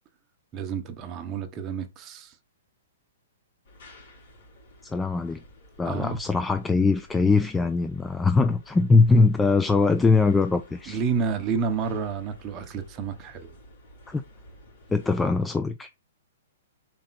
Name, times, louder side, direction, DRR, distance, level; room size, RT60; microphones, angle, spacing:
voice 1, 0.5-2.3 5.8-6.2 10.9-13.5, right 6 dB, 25° right, 1.0 m, -30 dB
sound 1, 3.6-15.2, equal, 65° left, 3.0 m, -51 dB
voice 2, 4.8-5.4 5.8-11.0 14.1-14.2 14.9-15.9, left 3 dB, 10° left, 0.3 m, -22 dB
5.2 x 4.4 x 4.1 m
hypercardioid pair, 150°, 0 cm